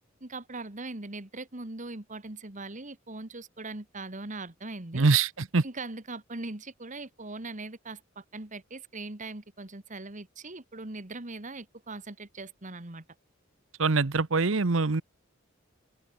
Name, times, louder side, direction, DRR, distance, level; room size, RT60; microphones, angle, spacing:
voice 1, 0.2-5.1 5.6-13.1, right 2 dB, 40° right, 2.0 m, -40 dB
voice 2, 4.9-5.6 13.8-15.0, right 4 dB, 75° right, 1.0 m, -24 dB
open air
head